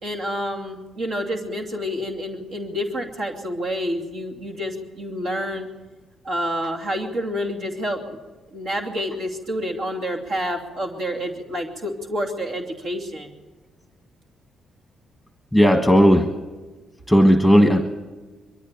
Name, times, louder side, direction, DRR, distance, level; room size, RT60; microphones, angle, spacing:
voice 1, 0.0-5.7 6.2-8.2 8.5-13.3, equal, 70° right, 0 dB, 2.8 m, -28 dB
voice 2, 15.5-16.3 17.1-17.8, equal, 5° right, 5 dB, 1.5 m, -14 dB
22.5 x 13.5 x 9.2 m, 1.3 s
cardioid pair, 90°, 0 cm